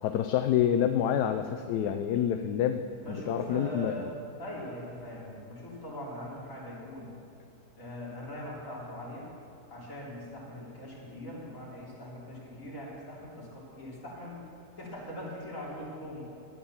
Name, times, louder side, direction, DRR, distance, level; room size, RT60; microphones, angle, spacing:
voice 1, 0.0-2.8 3.3-3.9, left 10 dB, 75° left, 8 dB, 1.1 m, -27 dB
voice 2, 3.0-4.1 4.4-7.1 7.8-9.3 9.7-14.4 14.8-16.2, left 1 dB, 50° left, -6 dB, 3.8 m, -41 dB
14.0 x 9.6 x 7.1 m, 2.7 s
omnidirectional pair, 1.8 m